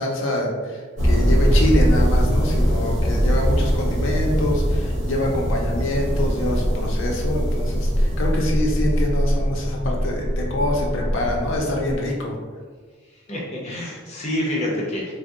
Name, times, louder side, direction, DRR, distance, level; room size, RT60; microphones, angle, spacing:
voice 1, 0.0-12.3, left 1 dB, 80° left, -1 dB, 0.5 m, -25 dB
sound 1, 1.0-12.0, equal, 85° right, 0.8 m, -21 dB
voice 2, 13.1-15.1, left 1 dB, 35° left, -4 dB, 0.7 m, -27 dB
2.6 x 2.0 x 3.5 m, 1.5 s
head